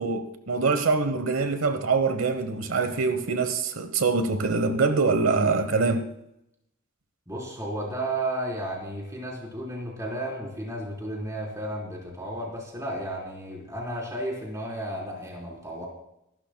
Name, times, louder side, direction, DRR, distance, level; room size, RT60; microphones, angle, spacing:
voice 1, 0.0-6.1, right 4 dB, 80° right, 9 dB, 1.0 m, -24 dB
voice 2, 7.3-15.9, right 1 dB, 15° right, -1 dB, 3.9 m, -33 dB
24.5 x 12.5 x 2.3 m, 0.81 s
head